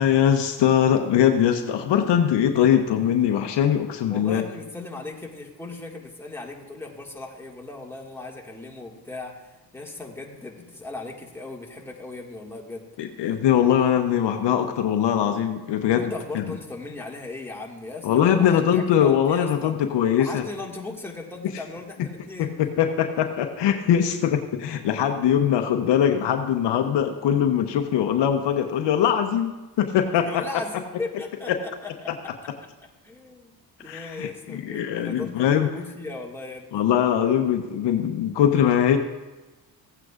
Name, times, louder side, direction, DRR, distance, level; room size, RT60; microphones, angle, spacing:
voice 1, 0.0-4.4 13.0-16.5 18.0-20.5 22.4-29.5 29.8-30.4 31.5-31.6 33.9-35.7 36.7-39.0, left 9 dB, 65° left, 6 dB, 0.9 m, -21 dB
voice 2, 4.1-12.9 15.9-19.7 20.2-22.6 30.1-32.1 33.0-36.8, left 3 dB, 5° left, -2 dB, 1.9 m, -37 dB
15.5 x 8.9 x 2.5 m, 1.1 s
cardioid pair, 80°, 46 cm